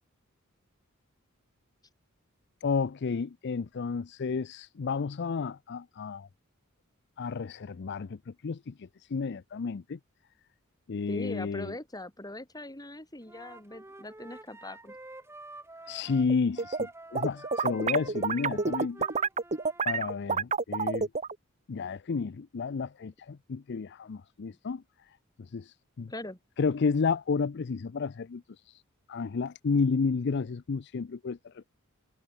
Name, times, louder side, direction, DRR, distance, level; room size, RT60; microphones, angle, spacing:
voice 1, 2.6-6.3 7.2-10.0 10.9-11.7 15.9-19.1 19.9-21.1 21.7-24.8 25.5-26.1 26.6-28.4 28.7-28.8 29.1-31.7, left 5 dB, 55° left, 0.5 m, -31 dB
voice 2, 11.1-15.0 26.1-26.4, left 1 dB, 20° left, 5.9 m, -41 dB
Wind instrument woodwind instrument, 13.2-19.9, right 2 dB, 10° right, 1.6 m, -48 dB
sound 1, 16.3-16.9 17.2-21.3, right 4 dB, 30° right, 1.1 m, -29 dB
head